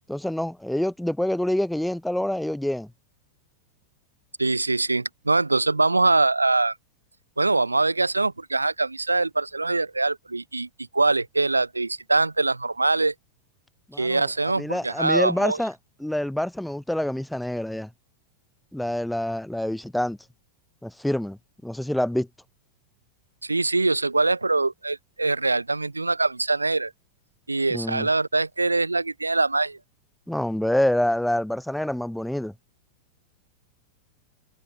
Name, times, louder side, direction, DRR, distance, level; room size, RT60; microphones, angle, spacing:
voice 1, 0.1-2.9 13.9-14.3 14.6-15.7 16.0-17.9 18.7-20.2 20.8-22.3 27.7-28.1 30.3-32.5, left 1 dB, ahead, 0.7 m, -26 dB
voice 2, 4.4-6.7 7.4-10.7 10.9-13.1 14.0-15.6 23.4-26.9 27.5-29.8, right 3 dB, 80° right, 0.5 m, -23 dB
figure-of-eight pair, 90°, 0 cm